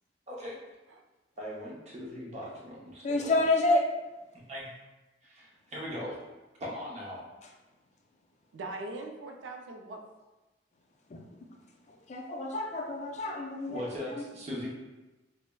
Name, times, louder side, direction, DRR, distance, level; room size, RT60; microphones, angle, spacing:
voice 1, 1.4-3.3 4.3-4.7 5.2-6.2 6.6-7.2 13.7-14.7, left 1 dB, 40° right, -4 dB, 0.7 m, -39 dB
voice 2, 3.0-3.9 11.1-11.3 11.9-14.2, left 2 dB, 40° left, 2 dB, 0.4 m, -29 dB
voice 3, 8.5-10.0, right 2 dB, 85° right, 3 dB, 0.4 m, -41 dB
4.4 x 2.0 x 2.2 m, 1.1 s
head